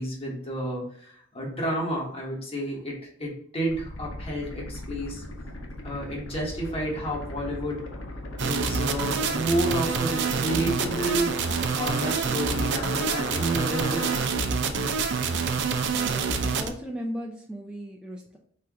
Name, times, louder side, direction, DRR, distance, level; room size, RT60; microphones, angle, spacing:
voice 1, 0.0-5.2 5.8-7.8 8.4-14.5, right 1 dB, 30° left, -4 dB, 1.4 m, -30 dB
sound 1, 3.7-14.3, left 1 dB, 80° left, 0.8 m, -39 dB
sound 2, 8.4-16.7, right 5 dB, 60° right, 0.5 m, -27 dB
voice 2, 16.0-18.4, equal, 5° right, -1 dB, 0.4 m, -37 dB
4.4 x 2.5 x 3.6 m, 0.62 s
head